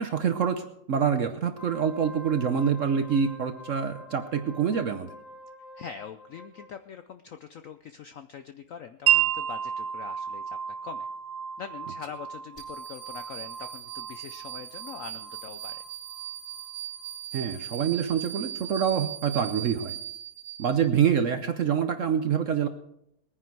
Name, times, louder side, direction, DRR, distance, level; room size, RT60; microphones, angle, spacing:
voice 1, 0.0-5.1 17.3-19.9 20.6-22.7, right 7 dB, 55° right, 8 dB, 0.9 m, -26 dB
Wind instrument woodwind instrument, 1.5-6.7, equal, 50° left, 1.3 m, -46 dB
voice 2, 5.7-11.1 11.6-15.8, left 7 dB, 70° left, 9 dB, 0.7 m, -43 dB
Wind chime, 9.1-16.7, right 10 dB, 80° right, 1.4 m, -31 dB
sound 1, 12.6-21.0, right 12 dB, 30° left, 5.3 m, -39 dB
20.5 x 9.8 x 4.6 m, 0.78 s
omnidirectional pair, 2.0 m